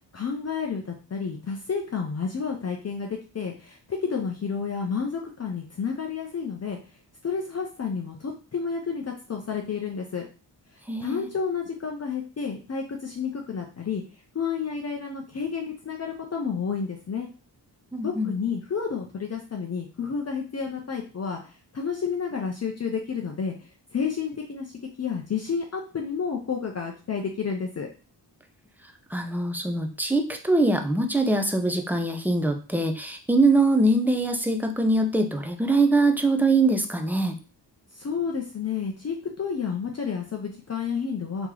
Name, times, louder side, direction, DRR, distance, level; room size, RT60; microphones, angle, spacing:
voice 1, 0.1-6.8 7.2-10.3 11.0-14.0 14.3-17.3 18.0-24.7 25.0-27.9 37.9-41.5, left 6 dB, 35° left, 1 dB, 0.6 m, -30 dB
voice 2, 10.9-11.3 17.9-18.3 29.1-37.4, right 2 dB, 5° right, 4 dB, 0.5 m, -23 dB
3.0 x 3.0 x 3.7 m, 0.34 s
wide cardioid pair, 100°, 43 cm